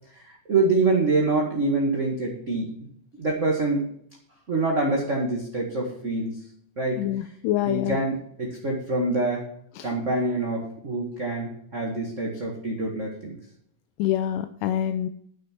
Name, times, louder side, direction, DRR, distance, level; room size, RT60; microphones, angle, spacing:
voice 1, 0.2-2.7 3.2-3.9 4.5-6.4 6.8-7.0 7.6-9.5 9.8-13.4, right 2 dB, 30° right, -2 dB, 1.3 m, -25 dB
voice 2, 7.0-8.0 9.8-9.9 14.0-15.1, left 12 dB, 80° left, 9 dB, 2.2 m, -26 dB
11.5 x 6.5 x 6.0 m, 0.67 s
omnidirectional pair, 4.0 m